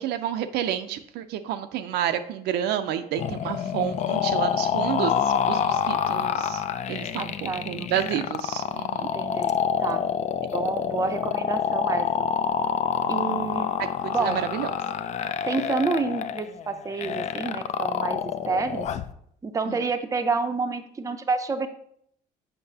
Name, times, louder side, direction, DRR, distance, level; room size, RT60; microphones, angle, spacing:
voice 1, 0.0-5.1 5.5-6.6 6.9-9.1 13.8-13.9 14.2-14.7 19.7-19.8, right 10 dB, 80° right, 9 dB, 0.5 m, -29 dB
sound 1, 3.2-19.1, left 8 dB, 45° left, 0.4 m, -27 dB
voice 2, 7.2-7.9 9.1-9.5 9.8-10.0 10.5-12.3 13.1-13.7 14.1-14.4 15.5-18.9 19.4-21.7, right 4 dB, 20° right, 7 dB, 0.5 m, -28 dB
6.7 x 5.4 x 2.8 m, 0.68 s
cardioid pair, 110°, 17 cm